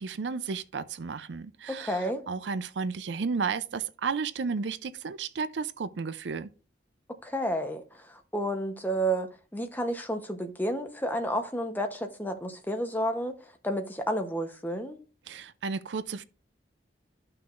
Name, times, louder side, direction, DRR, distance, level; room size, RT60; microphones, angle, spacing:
voice 1, 0.0-6.5 15.3-16.2, right 5 dB, 75° right, 0.5 m, -33 dB
voice 2, 1.7-2.2 7.2-13.3 13.6-15.0, right 1 dB, 10° left, 0.9 m, -31 dB
13.0 x 5.8 x 2.5 m
head